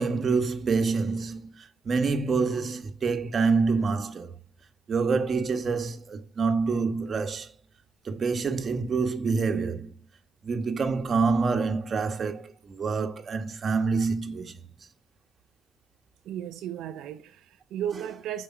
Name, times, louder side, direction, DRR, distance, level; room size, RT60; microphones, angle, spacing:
voice 1, 0.0-4.3 4.9-7.5 8.0-9.9 10.4-14.6, right 4 dB, 45° right, 1.4 m, -27 dB
voice 2, 16.2-18.4, right 10 dB, 85° right, 0.5 m, -35 dB
7.1 x 5.1 x 5.9 m
cardioid pair, 90°, 0 cm